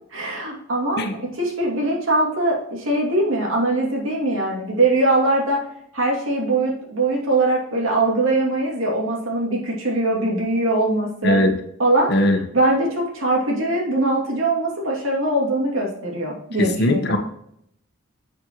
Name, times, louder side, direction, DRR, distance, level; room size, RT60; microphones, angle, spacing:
voice 1, 0.1-5.6 5.9-11.4 11.8-12.1 12.5-17.2, right 2 dB, 80° right, -2 dB, 2.7 m, -21 dB
voice 2, 11.2-11.5 12.1-12.4 16.6-17.2, left 1 dB, 55° left, 5 dB, 1.2 m, -19 dB
7.4 x 7.3 x 3.1 m, 0.72 s
head